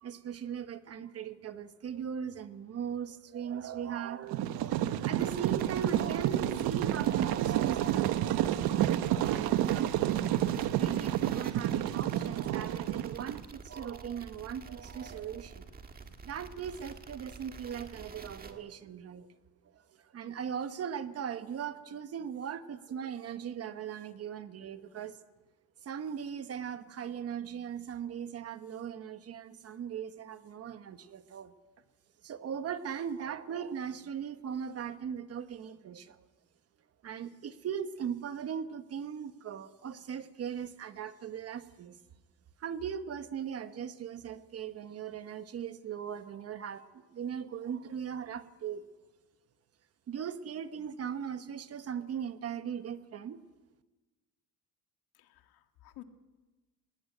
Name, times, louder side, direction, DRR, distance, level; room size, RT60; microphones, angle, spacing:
voice 1, 0.0-10.1 10.7-15.7 16.2-19.3 19.7-25.2 25.8-31.5 32.2-36.3 37.0-42.0 42.6-46.8 47.1-48.8 50.1-53.4, right 8 dB, 40° right, 1.1 m, -39 dB
sound 1, 4.3-13.4, right 12 dB, 75° right, 0.9 m, -30 dB
sound 2, 5.2-18.5, right 4 dB, 25° right, 1.6 m, -49 dB
voice 2, 55.2-56.0, left 17 dB, 80° left, 1.7 m, -53 dB
20.0 x 18.0 x 9.2 m
cardioid pair, 160°, 37 cm